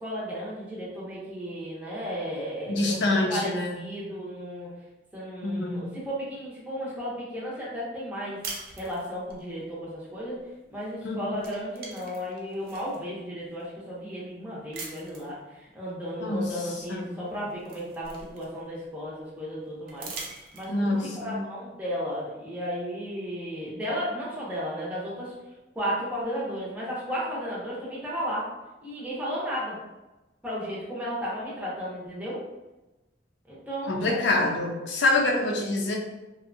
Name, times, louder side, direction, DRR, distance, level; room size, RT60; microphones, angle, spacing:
voice 1, 0.0-4.7 5.1-8.4 8.8-20.1 20.5-25.3 25.7-28.5 28.8-29.8 30.4-32.4 33.5-34.5 35.2-35.5, equal, 10° right, -7 dB, 0.6 m, -34 dB
voice 2, 2.7-3.7 5.4-5.8 11.0-11.2 16.2-16.5 16.9-17.1 20.7-21.4 33.9-36.0, left 2 dB, 65° left, 0 dB, 0.5 m, -26 dB
sound 1, 8.4-9.4 10.8-11.0 11.3-13.0 13.6-13.7 14.7-15.3 16.8-16.9 17.3-18.8 19.9-21.0, right 3 dB, 55° right, 0.5 m, -41 dB
2.6 x 2.1 x 2.5 m, 1.0 s
head